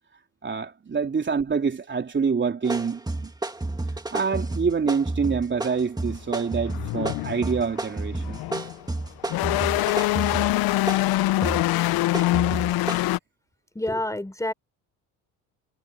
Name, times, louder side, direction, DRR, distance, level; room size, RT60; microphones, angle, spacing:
voice 1, 0.4-3.3 4.1-8.4, right 5 dB, 30° right, 3.6 m, -26 dB
sound 1, 2.6-13.0, right 2 dB, 10° right, 2.2 m, -31 dB
sound 2, 6.1-6.2 6.7-8.8 9.2-13.2, left 17 dB, 70° left, 0.8 m, -24 dB
voice 2, 13.7-14.5, left 1 dB, 10° left, 3.9 m, -28 dB
cardioid pair, 100°, 38 cm